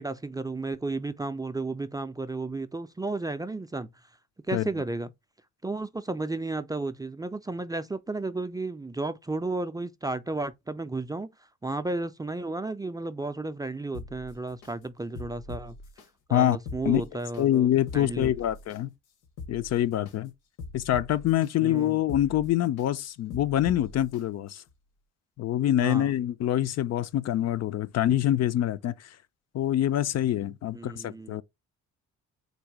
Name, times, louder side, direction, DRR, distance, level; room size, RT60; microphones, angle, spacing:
voice 1, 0.0-3.9 4.5-5.1 5.6-11.3 11.6-15.8 16.3-17.7 17.9-18.3 21.6-22.0 25.8-26.1 30.7-31.4, right 2 dB, 15° right, 0.4 m, -33 dB
sound 1, 13.9-14.7 15.2-16.1 16.5-17.4 17.9-18.8 19.2-20.2 20.6-21.5 22.0-22.9 23.3-24.2 24.7-24.8, left 3 dB, 85° left, 1.1 m, -42 dB
voice 2, 17.4-18.9 19.5-20.3 20.7-24.6 25.4-29.2 29.5-31.4, left 12 dB, 60° left, 0.5 m, -25 dB
4.0 x 2.5 x 4.7 m
cardioid pair, 90°, 30 cm